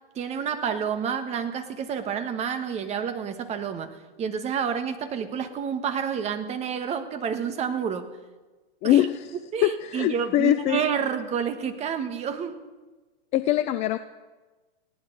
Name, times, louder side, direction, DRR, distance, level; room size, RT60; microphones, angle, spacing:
voice 1, 0.1-8.1 8.8-9.0 9.5-12.6, right 7 dB, 20° right, 8 dB, 1.4 m, -29 dB
voice 2, 8.8-9.3 9.6-10.8 13.3-14.0, left 13 dB, 25° left, 11 dB, 0.4 m, -22 dB
19.5 x 17.0 x 4.0 m, 1.2 s
hypercardioid pair, 120°, 29 cm